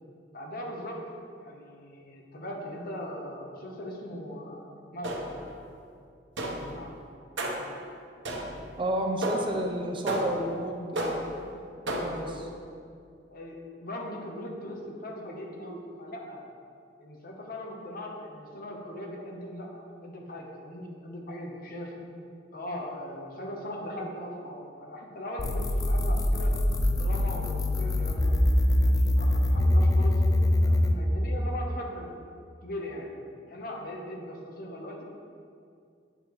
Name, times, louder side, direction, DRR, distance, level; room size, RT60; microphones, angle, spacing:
voice 1, 0.3-1.0 1.4-4.7 4.9-5.2 6.4-7.0 11.9-12.4 13.3-16.4 17.0-21.9 22.5-26.6 26.9-28.3 28.8-32.1 32.6-33.1 33.5-35.0, left 1 dB, 55° left, 0 dB, 1.0 m, -39 dB
sound 1, 5.0-5.5 6.4-6.8 7.4-7.8 8.2-8.7 9.2-9.6 10.1-10.5 11.0-11.4 11.9-12.3, right 1 dB, 80° right, 1.0 m, -32 dB
voice 2, 8.8-11.5 12.0-12.3 22.0-22.2, right 1 dB, 30° right, 1 dB, 0.6 m, -31 dB
sound 2, 25.4-31.0, left 1 dB, 20° left, 0.4 m, -23 dB
9.0 x 6.6 x 3.1 m, 2.4 s
head